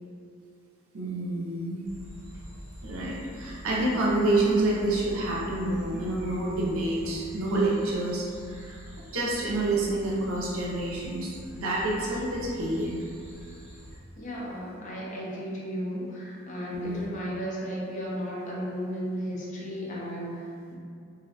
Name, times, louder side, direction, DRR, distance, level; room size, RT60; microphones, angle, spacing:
voice 1, 0.9-1.8 2.8-8.8 9.1-13.0 16.7-17.1, right 2 dB, 75° right, -4 dB, 0.5 m, -28 dB
sound 1, 1.8-14.0, equal, 10° right, 0.6 m, -45 dB
voice 2, 14.2-20.8, equal, 35° left, -5 dB, 0.4 m, -34 dB
2.5 x 2.1 x 2.7 m, 2.3 s
head